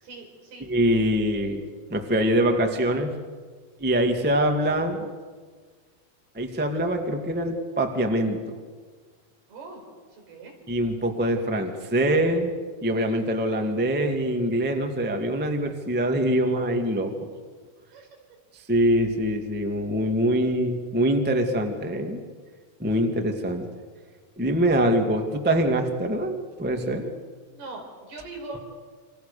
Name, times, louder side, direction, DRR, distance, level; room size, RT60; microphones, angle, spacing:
voice 1, 0.0-0.7 9.5-9.8 10.1-10.5 17.9-18.1 27.5-28.6, right 3 dB, 75° right, 1 dB, 6.9 m, -41 dB
voice 2, 0.6-1.6 1.9-3.1 3.8-5.1 6.3-8.6 10.7-12.5 12.8-17.1 18.7-22.2 22.8-23.7 24.4-27.1, right 1 dB, 10° right, 4 dB, 0.6 m, -24 dB
27.5 x 26.0 x 6.9 m, 1.6 s
omnidirectional pair, 4.6 m